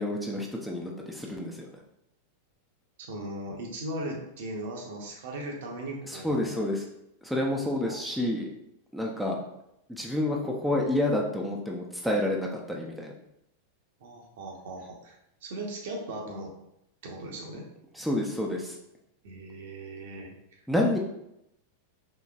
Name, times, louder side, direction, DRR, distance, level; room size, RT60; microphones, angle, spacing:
voice 1, 0.0-1.7 6.0-6.8 7.2-8.5 8.9-9.4 9.9-13.1 17.9-18.8 20.7-21.0, left 1 dB, ahead, -1 dB, 0.5 m, -29 dB
voice 2, 3.1-6.7 7.6-8.0 14.0-15.1 15.4-16.5 17.0-17.7 19.2-20.6, right 1 dB, 55° right, 0 dB, 0.7 m, -38 dB
4.0 x 2.9 x 2.4 m, 0.81 s
figure-of-eight pair, 90°, 0 cm